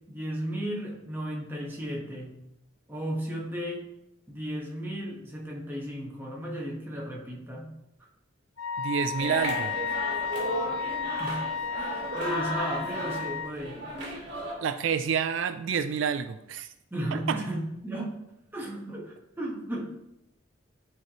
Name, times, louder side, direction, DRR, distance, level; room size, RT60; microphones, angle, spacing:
voice 1, 0.1-2.3 2.9-3.8 4.3-7.7 11.2-11.4 11.7-13.8 16.9-18.2 18.5-19.9, right 1 dB, 10° right, -3 dB, 1.3 m, -34 dB
Wind instrument woodwind instrument, 8.6-13.5, left 6 dB, 85° left, 0.6 m, -33 dB
voice 2, 8.8-9.7 14.6-16.7 17.1-17.4, right 7 dB, 75° right, 11 dB, 0.4 m, -28 dB
sound 1, 9.1-14.5, right 1 dB, 60° right, 2.2 m, -34 dB
12.0 x 4.4 x 3.0 m, 0.86 s
head